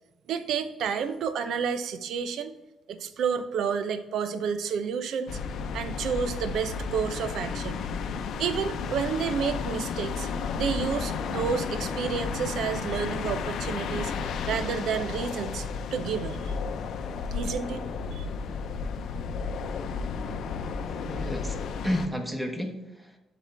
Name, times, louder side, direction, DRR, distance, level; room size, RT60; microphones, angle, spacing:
voice 1, 0.3-2.6 2.9-5.4 5.7-7.8 8.4-10.3 10.6-16.5 17.3-17.8 18.1-18.3, right 6 dB, 75° right, 11 dB, 0.6 m, -30 dB
sound 1, 5.3-22.1, left 5 dB, 75° left, 0.6 m, -33 dB
voice 2, 21.1-23.2, equal, 5° right, 4 dB, 1.2 m, -32 dB
11.5 x 4.2 x 3.4 m, 1.0 s
cardioid pair, 90°, 0 cm